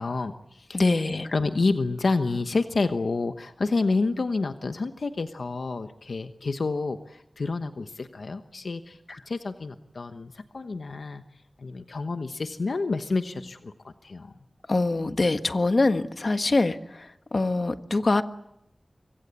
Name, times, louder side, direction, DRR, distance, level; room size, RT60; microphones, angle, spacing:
voice 1, 0.0-1.0 1.3-11.2 11.6-14.3, left 3 dB, 80° left, 8 dB, 1.1 m, -29 dB
voice 2, 0.7-1.3 14.7-18.2, left 2 dB, 55° left, 8 dB, 1.5 m, -24 dB
26.0 x 23.0 x 8.3 m, 0.83 s
wide cardioid pair, 70°, 0 cm